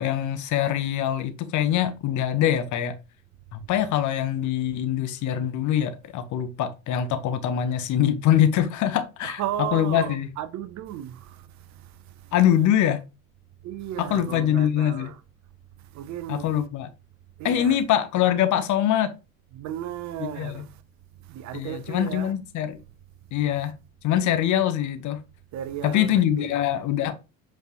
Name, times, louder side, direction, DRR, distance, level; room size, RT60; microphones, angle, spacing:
voice 1, 0.0-2.9 3.5-9.4 9.7-10.3 12.3-13.0 14.0-15.1 16.3-16.9 17.4-19.1 20.2-20.6 21.5-22.8 23.3-23.7 24.0-25.2 25.8-27.1, left 10 dB, 45° left, 1.2 m, -23 dB
voice 2, 9.2-11.4 13.6-15.2 15.9-16.5 17.4-17.8 19.5-20.7 21.3-22.3 25.5-26.6, right 11 dB, 40° right, 0.8 m, -34 dB
8.0 x 4.5 x 3.0 m
figure-of-eight pair, 70°, 41 cm